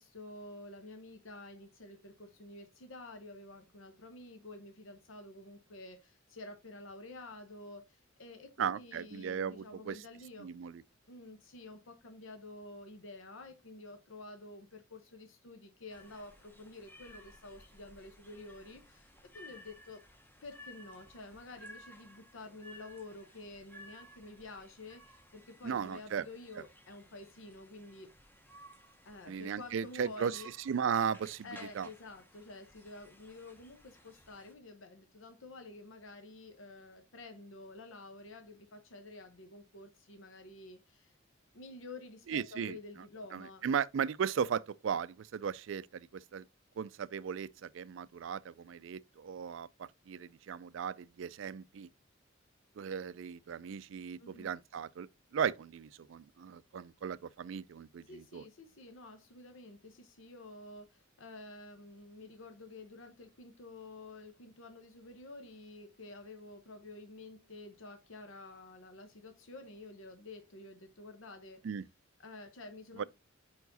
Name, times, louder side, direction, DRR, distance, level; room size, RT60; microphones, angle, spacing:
voice 1, 0.0-10.5 11.1-20.0 20.4-28.1 29.0-30.5 31.4-41.2 41.5-43.6 54.2-54.5 58.1-71.6 72.2-73.0, left 2 dB, 75° left, 0.9 m, -50 dB
voice 2, 8.6-10.0 10.4-10.8 25.6-26.2 29.3-30.3 30.7-31.5 31.8-31.9 42.3-42.7 43.3-46.4 46.8-51.9 52.8-58.4 71.6-71.9 73.0-73.1, right 7 dB, 65° right, 0.3 m, -36 dB
sound 1, 15.9-34.5, equal, 10° left, 0.8 m, -57 dB
5.2 x 4.6 x 3.9 m
head